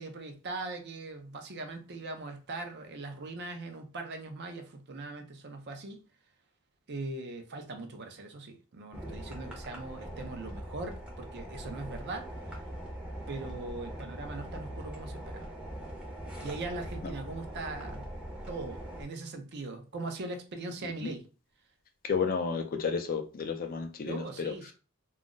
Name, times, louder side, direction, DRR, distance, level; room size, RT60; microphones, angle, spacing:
voice 1, 0.0-6.0 6.9-12.3 13.3-15.5 16.4-18.1 18.5-21.2 24.0-24.7, right 2 dB, 50° right, 0.5 m, -40 dB
sound 1, 8.9-19.0, right 1 dB, 5° right, 0.6 m, -42 dB
voice 2, 22.0-24.5, left 5 dB, 40° left, 0.4 m, -32 dB
2.4 x 2.0 x 3.7 m
head